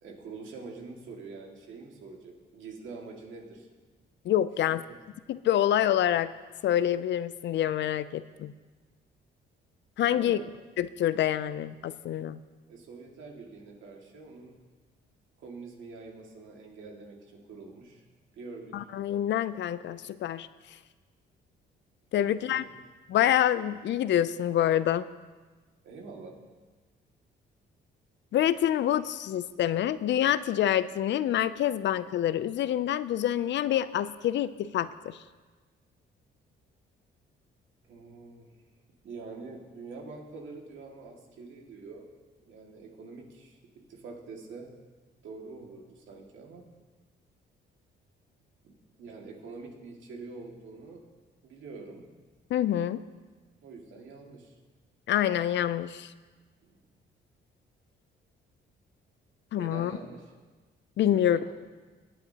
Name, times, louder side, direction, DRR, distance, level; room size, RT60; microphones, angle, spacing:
voice 1, 0.0-3.7 4.9-5.0 10.1-10.5 12.7-14.6 15.4-18.0 18.3-18.8 22.2-22.4 25.8-26.4 37.8-38.5 39.0-42.1 42.5-44.7 45.2-46.6 48.6-51.0 51.4-52.1 53.6-54.6 56.6-56.8 59.6-60.3 61.1-61.6, right 4 dB, 75° right, 0 dB, 2.2 m, -45 dB
voice 2, 4.2-4.8 5.3-6.3 6.6-8.5 10.0-10.4 10.8-12.4 18.7-20.5 22.1-22.6 23.1-25.1 28.3-35.2 52.5-53.0 55.1-56.1 59.5-59.9 61.0-61.4, left 11 dB, 65° left, 15 dB, 0.5 m, -26 dB
20.0 x 8.8 x 2.9 m, 1.3 s
cardioid pair, 90°, 20 cm